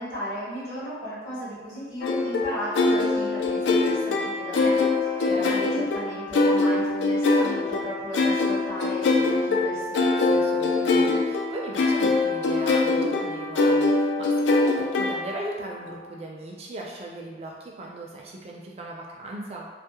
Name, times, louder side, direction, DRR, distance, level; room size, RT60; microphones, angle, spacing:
voice 1, 0.0-10.0, equal, 50° left, -10 dB, 0.9 m, -35 dB
sound 1, 2.0-15.6, left 3 dB, 85° left, 0.3 m, -23 dB
voice 2, 5.1-5.6 10.2-19.7, right 2 dB, 35° right, -1 dB, 0.3 m, -38 dB
2.2 x 2.0 x 2.8 m, 1.4 s
head